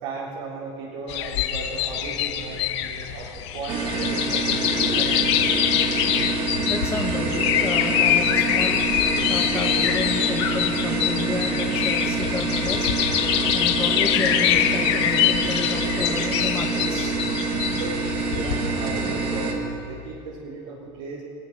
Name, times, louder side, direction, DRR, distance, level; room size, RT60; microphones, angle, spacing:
voice 1, 0.0-4.6 4.9-5.4 17.7-21.2, right 3 dB, 60° right, -6 dB, 3.8 m, -36 dB
sound 1, 1.1-18.7, left 11 dB, 70° left, 1.7 m, -24 dB
sound 2, 3.7-19.5, right 3 dB, 30° right, 2.7 m, -26 dB
voice 2, 6.7-8.8 9.3-12.9 13.5-17.1, left 4 dB, 15° left, 1 dB, 1.9 m, -31 dB
29.0 x 19.0 x 6.2 m, 2.7 s
supercardioid pair, 175°, 15 cm